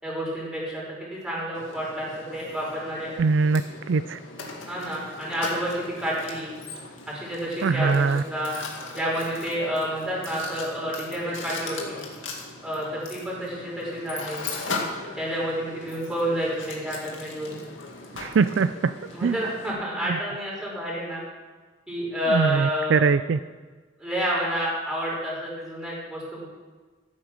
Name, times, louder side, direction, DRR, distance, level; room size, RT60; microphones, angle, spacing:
voice 1, 0.0-3.1 4.7-6.5 7.1-8.5 8.9-12.0 12.6-14.4 15.1-17.5 19.1-21.2 21.9-23.1 24.0-26.5, equal, 5° right, -6 dB, 5.0 m, -29 dB
Mechanisms, 1.5-19.7, left 3 dB, 90° left, 2.1 m, -38 dB
voice 2, 3.2-3.6 3.9-4.2 7.6-8.2 18.2-18.9 19.2-19.3 22.3-23.4, right 5 dB, 70° right, 13 dB, 0.4 m, -22 dB
14.5 x 8.7 x 6.1 m, 1.4 s
head